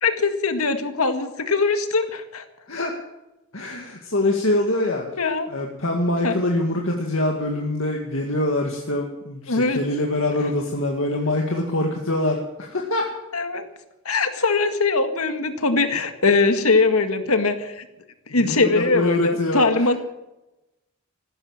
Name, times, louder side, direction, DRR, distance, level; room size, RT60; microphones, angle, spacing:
voice 1, 0.0-2.4 5.2-5.5 6.2-6.4 9.5-9.8 13.3-13.7 14.1-17.9 18.3-20.0, left 3 dB, 75° left, 8 dB, 1.9 m, -21 dB
voice 2, 3.5-5.1 5.5-13.1 18.4-19.8, left 1 dB, 60° left, 1 dB, 2.1 m, -24 dB
15.5 x 12.5 x 7.3 m, 0.96 s
head